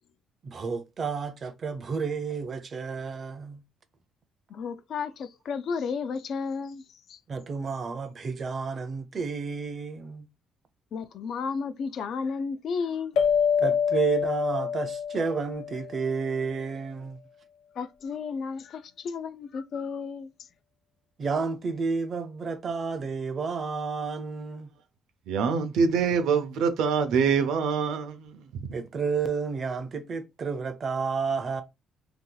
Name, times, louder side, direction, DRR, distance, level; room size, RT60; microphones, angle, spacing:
voice 1, 0.4-3.6 7.3-10.3 13.6-17.2 21.2-24.7 28.7-31.6, right 5 dB, 35° right, 0.5 m, -31 dB
voice 2, 4.5-7.2 10.9-13.2 17.8-20.3, left 5 dB, 50° left, 0.3 m, -33 dB
sound 1, 13.2-16.1, left 7 dB, 85° left, 0.7 m, -26 dB
voice 3, 25.3-28.8, right 6 dB, 75° right, 0.6 m, -25 dB
2.7 x 2.3 x 3.7 m
cardioid pair, 150°, 0 cm